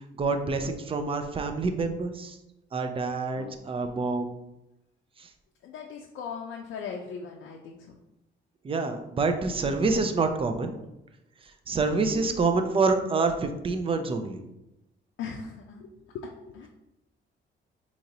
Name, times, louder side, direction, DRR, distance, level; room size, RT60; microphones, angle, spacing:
voice 1, 0.2-2.4 2.7-4.3 8.6-10.8 11.7-14.4, right 3 dB, 25° right, 7 dB, 0.4 m, -27 dB
voice 2, 3.3-4.0 5.6-8.0 12.1-12.4 15.2-16.7, left 6 dB, 75° left, 0 dB, 0.5 m, -40 dB
3.9 x 3.0 x 2.7 m, 0.92 s
cardioid pair, 90°, 20 cm